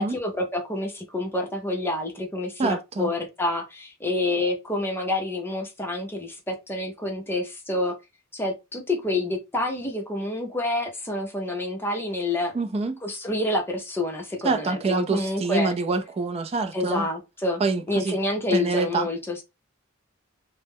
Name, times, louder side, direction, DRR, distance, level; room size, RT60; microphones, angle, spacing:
voice 1, 0.0-8.0 8.3-12.5 13.0-15.7 16.7-17.6 17.9-19.4, left 2 dB, 10° left, 0.6 m, -28 dB
voice 2, 2.6-3.1 12.5-12.9 14.4-17.1 17.6-18.1 18.5-19.1, right 3 dB, 30° right, 0.4 m, -26 dB
2.2 x 2.0 x 3.4 m
head